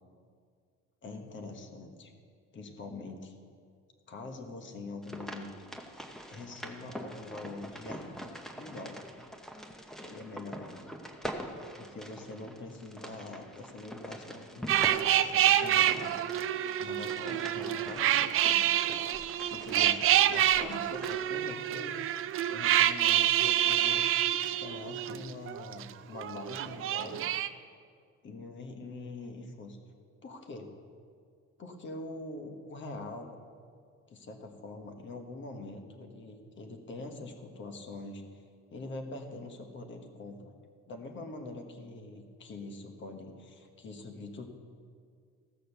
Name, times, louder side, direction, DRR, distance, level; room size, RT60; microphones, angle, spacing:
voice 1, 1.0-2.1 2.5-3.3 4.1-5.7 6.3-8.2 8.6-9.1 10.0-11.0 11.4-16.1 16.8-18.7 19.2-22.0 22.5-27.2 28.2-29.8 30.2-30.7 31.6-33.4 34.1-38.4 38.7-40.5 40.9-44.5, left 2 dB, 40° left, 4 dB, 1.3 m, -44 dB
sound 1, 5.0-21.2, equal, ahead, 0.7 m, -44 dB
sound 2, 14.7-25.8 26.1-27.5, right 11 dB, 45° right, 0.4 m, -27 dB
15.5 x 6.6 x 6.7 m, 2.2 s
cardioid pair, 170°, 30 cm